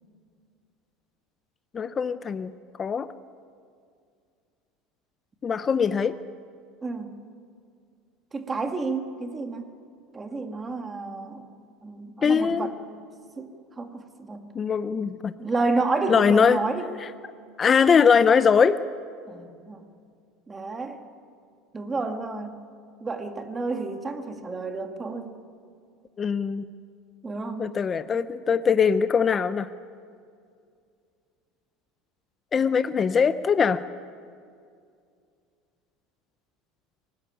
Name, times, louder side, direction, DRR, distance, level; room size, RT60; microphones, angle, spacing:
voice 1, 1.7-2.5 2.8-3.1 5.4-6.2 12.2-12.7 14.5-15.3 16.1-16.6 17.6-18.8 26.2-26.6 27.6-29.7 32.5-33.8, left 6 dB, 20° left, 12 dB, 0.6 m, -21 dB
voice 2, 6.8-7.2 8.3-9.7 10.1-11.5 11.8-12.7 13.4-13.5 13.8-14.5 15.4-16.9 19.3-19.9 20.5-21.0 21.7-22.6 23.0-25.3 27.2-27.7, right 3 dB, 15° right, 6 dB, 1.8 m, -30 dB
24.0 x 19.5 x 10.0 m, 2.3 s
cardioid pair, 165°, 0 cm